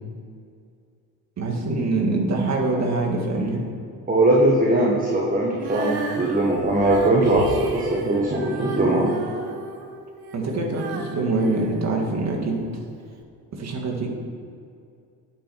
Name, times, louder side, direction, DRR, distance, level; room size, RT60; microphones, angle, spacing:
voice 1, 1.4-3.6 10.3-12.6 13.5-14.1, right 2 dB, 35° right, -1 dB, 1.9 m, -24 dB
voice 2, 4.1-9.2, right 1 dB, 15° right, -2 dB, 1.4 m, -20 dB
Female singing, 5.5-12.6 13.2-13.3, right 3 dB, 50° right, 1.2 m, -33 dB
9.1 x 5.8 x 4.7 m, 2.4 s
figure-of-eight pair, 55°, 49 cm